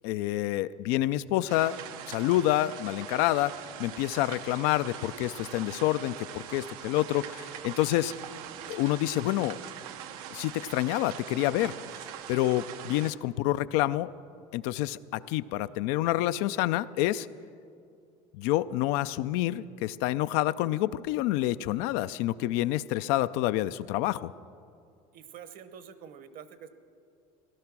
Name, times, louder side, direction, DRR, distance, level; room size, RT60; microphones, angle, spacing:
voice 1, 0.0-1.8 2.1-3.5 3.8-8.1 8.7-9.6 10.3-11.7 12.3-14.1 14.5-17.3 18.3-24.3, left 15 dB, 70° left, 14 dB, 0.4 m, -28 dB
sound 1, 1.5-13.1, right 10 dB, 85° right, 0.8 m, -42 dB
voice 2, 25.1-26.7, right 8 dB, 50° right, 12 dB, 1.0 m, -46 dB
17.0 x 11.5 x 6.0 m, 2.4 s
supercardioid pair, 110°, 18 cm